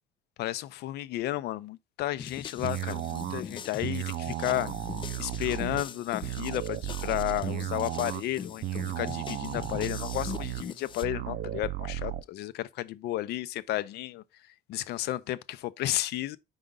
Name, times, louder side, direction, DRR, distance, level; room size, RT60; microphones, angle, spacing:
voice 1, 0.4-4.7 5.2-14.2 14.7-16.4, left 15 dB, 75° left, 0.6 m, -33 dB
sound 1, 2.2-11.1, left 7 dB, 30° left, 0.3 m, -42 dB
sound 2, 2.6-12.2, right 13 dB, 65° right, 0.5 m, -35 dB
4.9 x 3.7 x 5.5 m
cardioid pair, 110°, 17 cm